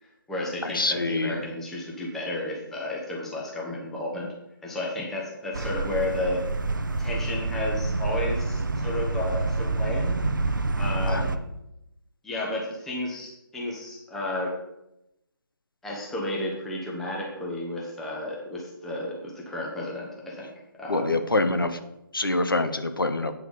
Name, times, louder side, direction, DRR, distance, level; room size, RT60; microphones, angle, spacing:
voice 1, 0.0-4.3 4.6-6.4 7.0-10.2 10.8-11.4 12.2-14.6 15.8-20.5 20.8-21.2, left 1 dB, 5° left, -3 dB, 1.0 m, -32 dB
voice 2, 0.6-1.4 11.1-11.2 20.9-21.8 22.1-23.3, left 2 dB, 65° left, 8 dB, 1.0 m, -25 dB
sound 1, 5.5-11.4, right 3 dB, 60° right, 0.8 m, -27 dB
9.1 x 6.0 x 5.3 m, 0.87 s
figure-of-eight pair, 150°, 12 cm